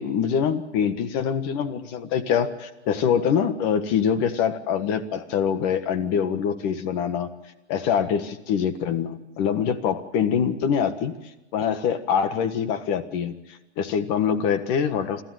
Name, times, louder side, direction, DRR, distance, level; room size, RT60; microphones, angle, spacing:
voice 1, 0.0-7.3 7.7-11.1 11.5-13.3 13.8-15.2, left 7 dB, 35° left, 10 dB, 1.6 m, -24 dB
27.5 x 13.5 x 7.9 m, 1.1 s
hypercardioid pair, 150°, 34 cm